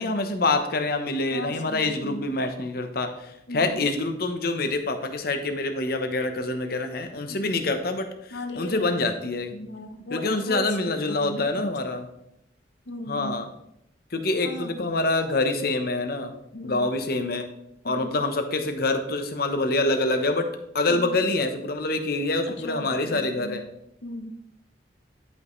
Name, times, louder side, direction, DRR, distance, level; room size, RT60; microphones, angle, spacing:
voice 1, 0.0-9.5 10.1-12.1 13.1-13.5 14.1-16.3 16.6-17.5 17.8-20.5 20.7-23.6, left 2 dB, 55° left, 6 dB, 0.9 m, -26 dB
voice 2, 1.3-2.3 3.5-3.8 7.3-7.6 8.3-8.9 9.5-11.7 12.9-13.3 14.4-14.9 16.5-16.9 17.8-18.1 20.9-21.2 22.5-23.6 24.0-24.3, left 1 dB, 75° left, 7 dB, 0.9 m, -36 dB
11.0 x 5.3 x 3.2 m, 0.80 s
head